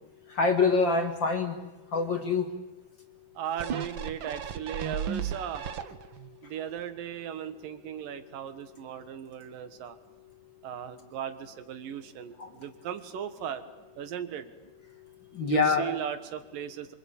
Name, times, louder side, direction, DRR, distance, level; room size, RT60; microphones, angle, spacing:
voice 1, 0.3-1.6 1.9-2.5 12.4-12.5 15.3-15.9, left 4 dB, 40° left, 5 dB, 2.2 m, -25 dB
voice 2, 3.4-5.7 6.4-10.0 10.6-13.6 14.0-14.5 15.4-17.0, right 9 dB, 85° right, 10 dB, 3.2 m, -37 dB
sound 1, 3.6-6.3 6.8-6.9, right 8 dB, 60° right, 1.3 m, -35 dB
26.0 x 24.0 x 8.9 m, 1.1 s
omnidirectional pair, 3.8 m